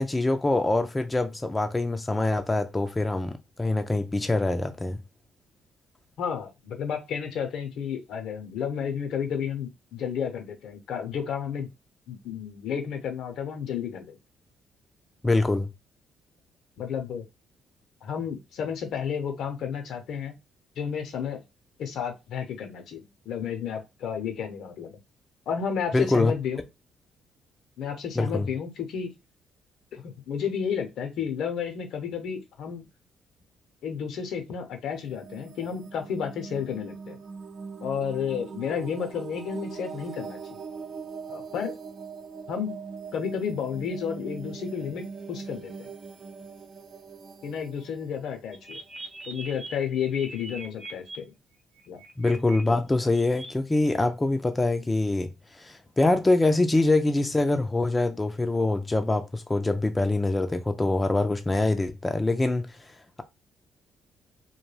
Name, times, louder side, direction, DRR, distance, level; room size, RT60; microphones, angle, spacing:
voice 1, 0.0-5.0 15.2-15.7 25.9-26.3 28.2-28.5 52.2-55.3 55.6-62.8, left 2 dB, 20° left, 0.4 m, -24 dB
voice 2, 6.2-11.7 12.1-14.2 16.8-17.2 18.0-20.3 20.8-21.4 21.8-25.0 25.5-26.6 27.8-29.1 29.9-32.8 33.8-37.2 37.8-40.6 41.3-41.7 42.5-42.8 43.1-45.9 47.4-48.8 49.3-51.2 51.9-52.0, left 7 dB, 70° left, 0.7 m, -32 dB
sound 1, 34.9-49.6, right 5 dB, 45° right, 0.5 m, -41 dB
sound 2, 48.5-51.2 51.8-52.6 52.9-53.5, right 3 dB, 60° right, 0.8 m, -42 dB
2.2 x 2.2 x 3.2 m
hypercardioid pair, 50°, 0 cm